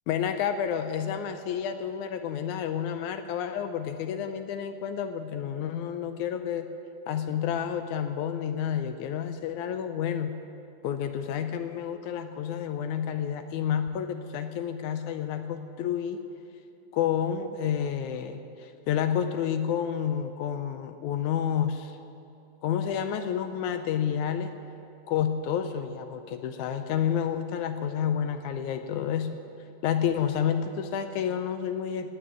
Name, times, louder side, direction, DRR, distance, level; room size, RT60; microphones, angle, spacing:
voice 1, 0.1-6.7 7.1-10.3 10.8-16.2 16.9-22.0 22.6-24.5 25.1-29.3 29.8-32.1, left 8 dB, 80° left, 8 dB, 1.9 m, -30 dB
19.0 x 6.3 x 9.4 m, 2.7 s
omnidirectional pair, 3.7 m